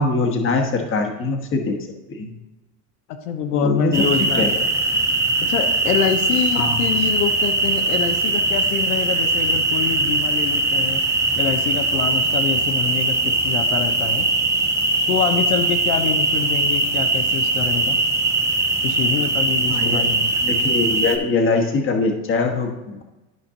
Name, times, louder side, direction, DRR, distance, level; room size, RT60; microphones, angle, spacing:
voice 1, 0.0-1.8 2.1-2.3 3.5-4.6 6.5-6.8 19.7-20.1 20.4-23.0, left 3 dB, 25° left, 4 dB, 1.2 m, -22 dB
voice 2, 3.2-4.6 5.4-11.0 11.3-14.3 15.1-18.0 18.8-20.3, left 8 dB, 70° left, 5 dB, 1.0 m, -25 dB
sound 1, 3.9-21.2, right 2 dB, 5° right, 0.5 m, -20 dB
12.5 x 5.1 x 2.8 m, 1.1 s
supercardioid pair, 120°, 47 cm